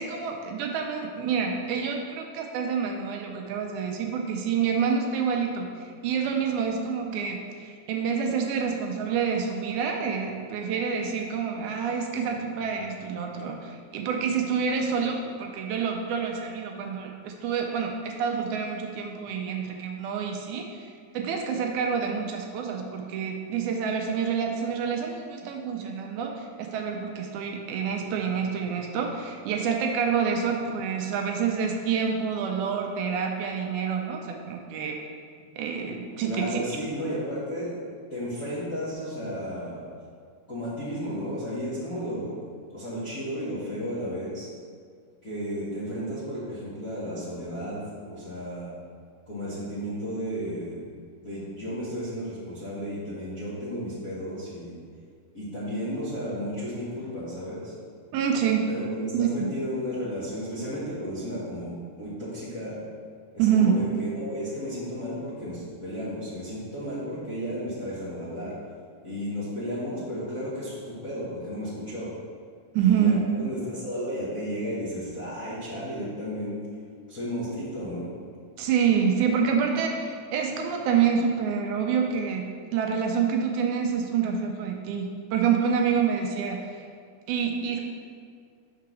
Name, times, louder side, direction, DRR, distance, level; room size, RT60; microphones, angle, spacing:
voice 1, 0.0-20.9 21.1-35.0 35.6-36.6 58.1-58.7 59.1-59.5 63.4-63.7 72.8-73.2 78.6-86.8 87.3-87.8, right 6 dB, 80° right, 2 dB, 2.0 m, -27 dB
voice 2, 36.2-37.8 38.1-39.8 40.5-42.4 42.7-44.5 45.2-48.7 49.3-50.8 51.2-54.8 55.3-57.7 58.7-62.8 63.3-68.5 69.0-72.1 72.8-76.6 77.1-78.1, equal, 45° left, -12 dB, 1.1 m, -33 dB
5.8 x 3.7 x 6.1 m, 2.1 s
omnidirectional pair, 3.6 m